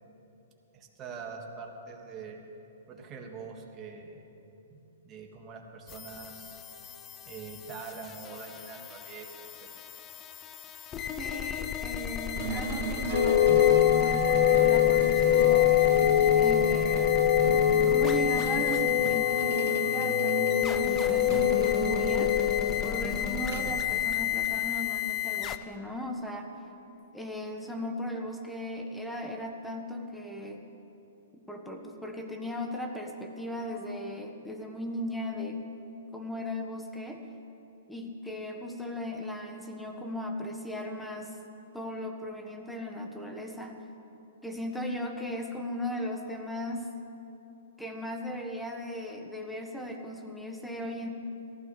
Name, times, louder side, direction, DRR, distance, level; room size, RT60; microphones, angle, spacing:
voice 1, 0.7-2.4 2.9-4.2 4.7-4.8 5.0-6.6 7.3-9.7, right 5 dB, 25° right, 1 dB, 1.8 m, -44 dB
sound 1, 5.9-25.6, left 10 dB, 25° left, 0.5 m, -33 dB
voice 2, 11.2-15.8 16.4-17.2 17.9-22.3 22.8-26.5 27.1-30.6 31.5-35.6 36.1-37.2 37.9-41.3 41.7-43.8 44.4-46.9 47.8-51.1, left 1 dB, ahead, 2 dB, 1.3 m, -37 dB
sound 2, 12.4-24.6, right 8 dB, 65° right, 0.6 m, -38 dB
sound 3, 13.1-23.0, left 10 dB, 60° left, 1.0 m, -24 dB
18.5 x 15.0 x 3.3 m, 2.9 s
hypercardioid pair, 135°, 0 cm